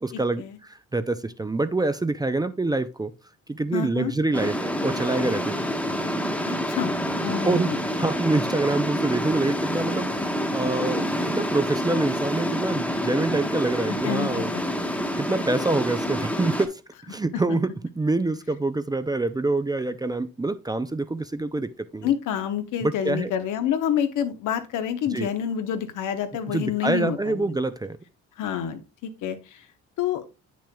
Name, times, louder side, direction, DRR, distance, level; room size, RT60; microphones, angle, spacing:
voice 1, 0.0-3.1 3.5-5.7 7.4-10.2 10.5-14.5 15.2-16.8 17.1-17.7 18.0-22.1 22.8-23.3 25.1-25.3 26.5-28.0, right 2 dB, 15° right, 0.4 m, -26 dB
voice 2, 3.7-4.1 6.4-6.9 7.2-7.8 13.9-14.6 17.3-17.4 22.0-27.5 28.4-29.6 30.0-30.2, left 9 dB, 80° left, 1.0 m, -28 dB
sound 1, 4.3-16.7, equal, 5° left, 1.2 m, -27 dB
8.2 x 6.2 x 2.2 m
cardioid pair, 90°, 30 cm